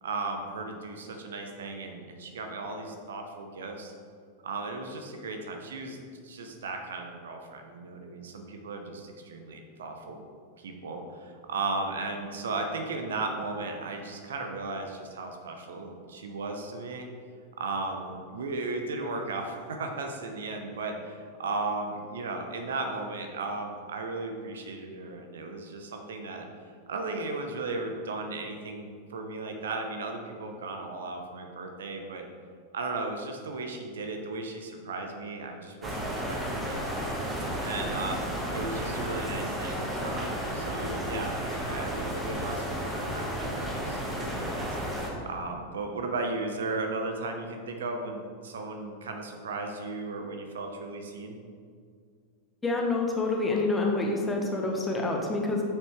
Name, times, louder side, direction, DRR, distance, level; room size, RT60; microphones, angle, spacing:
voice 1, 0.0-3.9 4.4-6.0 6.2-10.2 10.6-17.1 17.6-26.5 26.9-32.3 32.7-36.8 37.6-38.2 38.5-44.8 45.3-51.4, right 3 dB, 65° right, 4 dB, 0.8 m, -36 dB
sound 1, 35.8-45.1, equal, 10° right, 1.5 m, -32 dB
voice 2, 52.6-55.6, left 3 dB, 15° left, 0 dB, 1.3 m, -27 dB
8.7 x 6.6 x 3.2 m, 2.1 s
figure-of-eight pair, 90°, 0 cm